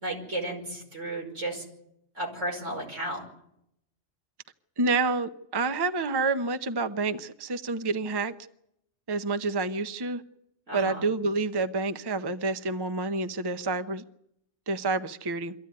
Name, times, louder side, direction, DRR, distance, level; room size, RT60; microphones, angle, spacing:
voice 1, 0.0-1.6 2.1-3.2 10.7-11.1, right 1 dB, 85° right, -1 dB, 5.9 m, -33 dB
voice 2, 4.8-8.3 9.1-10.2 10.7-14.0 14.7-15.5, right 3 dB, 25° right, 9 dB, 0.7 m, -28 dB
24.0 x 14.5 x 9.6 m, 0.78 s
omnidirectional pair, 1.2 m